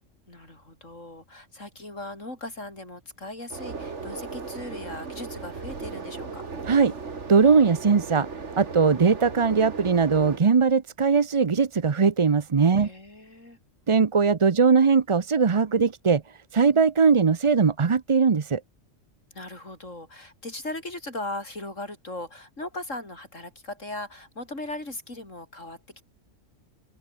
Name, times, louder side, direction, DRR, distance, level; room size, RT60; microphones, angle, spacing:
voice 1, 0.3-6.4 12.7-13.6 19.3-25.8, left 2 dB, 75° left, 7.1 m, -38 dB
sound 1, 3.5-10.4, right 4 dB, 65° right, 2.4 m, -37 dB
voice 2, 7.3-8.3 8.6-12.9 13.9-16.2 16.5-18.6, right 5 dB, 35° right, 0.6 m, -20 dB
open air
omnidirectional pair, 1.3 m